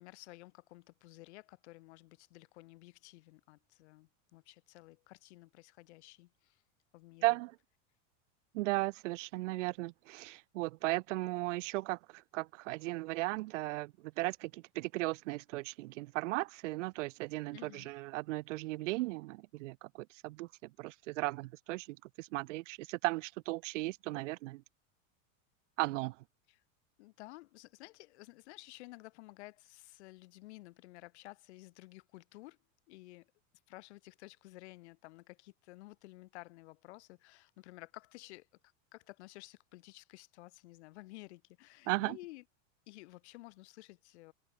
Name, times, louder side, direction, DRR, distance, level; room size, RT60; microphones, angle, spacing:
voice 1, 0.0-6.6 6.9-7.2 17.5-17.9 26.5-26.6 27.0-32.6 32.9-33.3 33.7-38.5 38.9-42.4 42.9-44.3, left 20 dB, 55° left, 3.3 m, -53 dB
voice 2, 7.2-7.6 8.5-24.6 25.8-26.2 41.9-42.2, right 20 dB, 65° right, 0.6 m, -36 dB
supercardioid pair, 175°, 40 cm